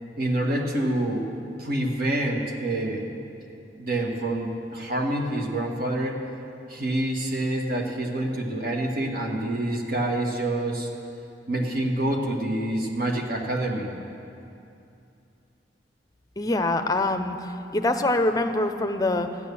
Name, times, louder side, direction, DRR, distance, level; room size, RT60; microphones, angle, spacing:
voice 1, 0.2-1.3 1.6-3.0 3.7-6.2 6.7-10.9 11.5-13.9, right 1 dB, 55° right, 0 dB, 1.6 m, -27 dB
voice 2, 16.4-17.4 17.7-19.3, left 2 dB, 20° left, 6 dB, 0.6 m, -24 dB
13.5 x 9.8 x 6.9 m, 2.6 s
head